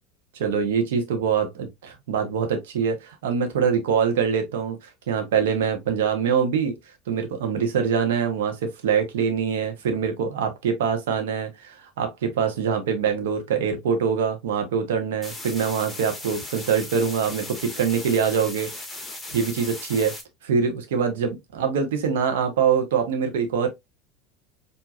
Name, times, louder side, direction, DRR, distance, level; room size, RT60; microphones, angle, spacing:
voice 1, 0.3-4.8 5.1-6.7 7.1-18.7 19.3-20.1 20.4-23.7, right 6 dB, 70° right, 1.0 m, -24 dB
sound 1, 15.2-20.2, left 2 dB, 5° left, 1.4 m, -37 dB
4.6 x 2.7 x 2.4 m
figure-of-eight pair, 75°, 0 cm